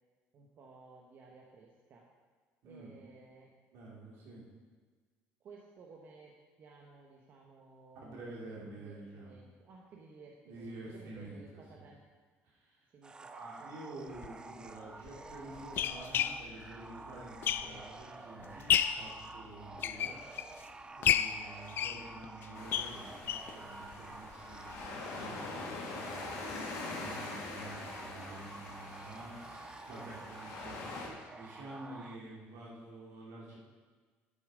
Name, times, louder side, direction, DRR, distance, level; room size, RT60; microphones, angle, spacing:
voice 1, 0.3-2.1 2.6-3.5 5.4-12.0 12.9-13.7, right 4 dB, 45° right, -1 dB, 1.1 m, -56 dB
voice 2, 2.6-2.9 3.7-4.4 7.9-9.4 10.4-11.9 12.4-12.9 13.3-20.1 20.9-26.4 26.8-33.6, right 2 dB, 75° right, -4 dB, 3.1 m, -49 dB
sound 1, 13.0-32.2, right 3 dB, 15° right, 0.4 m, -50 dB
sound 2, 14.1-14.3 15.1-18.0 18.4-19.1 19.6-20.6 21.0-23.6 23.9-24.0 24.3-24.4 24.8-24.9, left 10 dB, 45° left, 0.4 m, -32 dB
sound 3, 22.5-31.1, left 3 dB, 80° left, 2.3 m, -44 dB
10.0 x 7.3 x 5.1 m, 1.5 s
cardioid pair, 135°, 5 cm